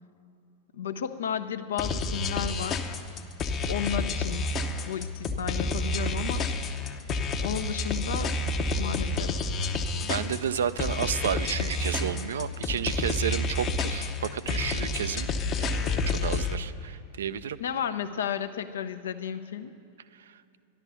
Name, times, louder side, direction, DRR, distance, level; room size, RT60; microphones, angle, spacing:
voice 1, 0.7-2.9 3.7-4.4 4.8-6.5 7.4-8.3 8.8-9.4 17.6-19.7, left 8 dB, 65° left, 10 dB, 0.7 m, -33 dB
sound 1, 1.8-16.6, left 3 dB, 30° left, 0.8 m, -29 dB
voice 2, 10.0-17.6, right 8 dB, 65° right, 14 dB, 0.4 m, -31 dB
13.0 x 11.5 x 6.9 m, 2.8 s
figure-of-eight pair, 90°, 0 cm